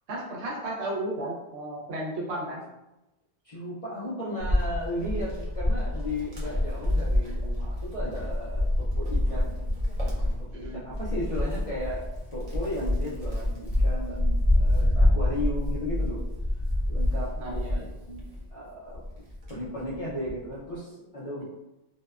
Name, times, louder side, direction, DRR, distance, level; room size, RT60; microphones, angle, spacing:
voice 1, 0.1-2.6 6.4-6.5 10.5-10.9 17.4-17.9, right 1 dB, 80° right, -4 dB, 1.0 m, -34 dB
voice 2, 3.4-9.5 10.0-16.2 16.9-19.0 19.5-21.4, left 1 dB, 50° left, -8 dB, 0.4 m, -35 dB
Wind, 4.4-18.5 18.9-20.4, left 1 dB, 40° right, 0.6 m, -27 dB
2.6 x 2.1 x 2.3 m, 0.96 s
omnidirectional pair, 1.1 m